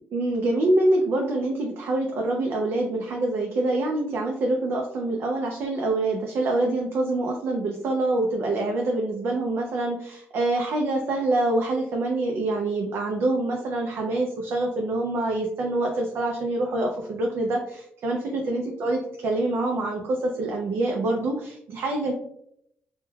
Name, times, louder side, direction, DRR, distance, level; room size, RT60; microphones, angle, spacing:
voice 1, 0.1-22.1, right 2 dB, 65° right, 1 dB, 0.4 m, -25 dB
3.1 x 2.1 x 2.2 m, 0.72 s
wide cardioid pair, 160°, 4 cm